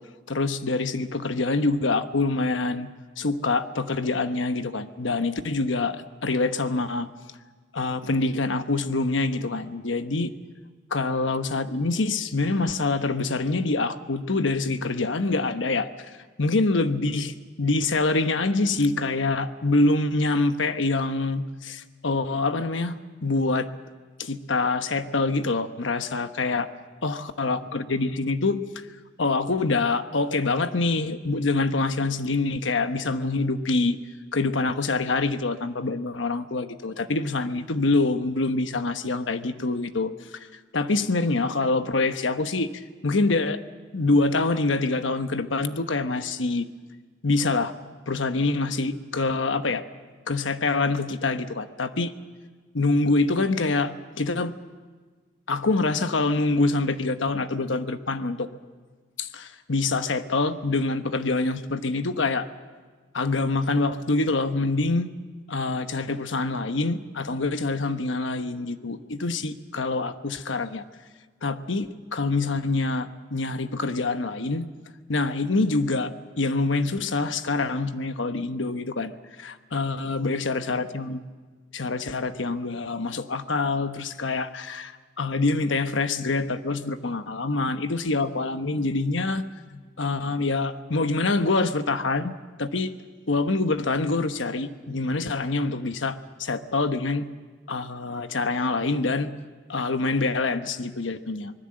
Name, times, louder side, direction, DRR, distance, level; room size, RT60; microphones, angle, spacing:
voice 1, 0.3-2.9 3.2-7.1 7.7-10.3 10.9-15.9 16.4-23.7 24.2-26.7 27.0-28.6 29.2-34.0 34.3-40.1 40.7-42.7 43.0-43.6 43.9-46.6 47.2-47.7 48.1-49.8 50.3-52.1 52.7-54.5 55.5-58.5 59.2-62.5 63.1-65.1 65.5-70.8 71.4-74.7 75.1-79.1 79.4-81.2 81.7-89.5 89.7-92.3 92.6-92.9 93.3-97.3 97.7-99.3 99.7-101.5, left 3 dB, 80° left, 10 dB, 1.1 m, -25 dB
25.5 x 20.0 x 7.7 m, 1.4 s
head